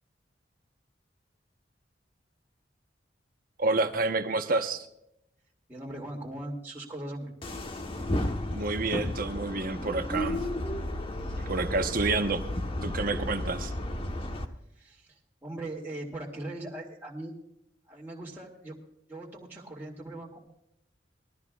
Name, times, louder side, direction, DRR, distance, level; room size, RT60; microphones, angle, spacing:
voice 1, 3.6-4.9 8.5-10.4 11.4-12.5 12.8-13.7, right 3 dB, 50° right, 7 dB, 1.1 m, -29 dB
voice 2, 5.7-7.3 14.8-17.3 17.9-18.8 19.1-20.5, right 1 dB, 10° right, -4 dB, 2.4 m, -40 dB
sound 1, 7.4-14.5, left 1 dB, 30° left, 1.2 m, -33 dB
21.0 x 13.5 x 2.4 m, 0.78 s
head